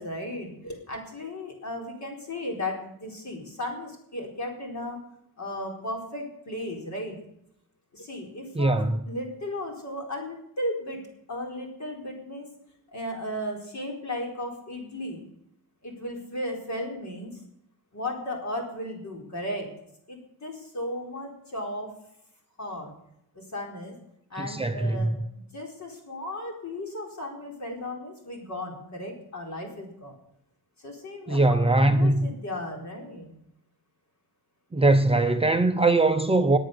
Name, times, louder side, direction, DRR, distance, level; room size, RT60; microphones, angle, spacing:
voice 1, 0.0-5.0 5.4-7.2 7.9-11.0 11.3-12.5 12.9-15.2 15.8-17.4 17.9-19.8 20.1-22.0 22.6-22.9 23.3-23.9 24.3-25.2 25.5-30.1 30.8-33.3, left 1 dB, 45° left, 4.2 m, -35 dB
voice 2, 8.6-9.0 24.4-25.2 31.3-32.3 34.7-36.6, right 2 dB, 15° right, 0.5 m, -21 dB
19.0 x 9.1 x 6.7 m
wide cardioid pair, 170°, 38 cm